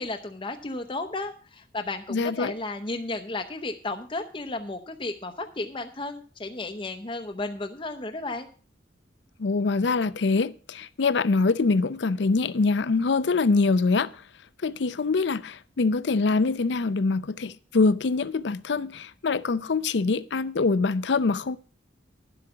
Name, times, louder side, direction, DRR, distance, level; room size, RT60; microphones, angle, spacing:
voice 1, 0.0-8.5, left 2 dB, 25° left, 0.7 m, -33 dB
voice 2, 2.1-2.5 9.4-14.1 14.6-21.6, left 4 dB, 70° left, 0.5 m, -24 dB
11.0 x 7.8 x 5.6 m
head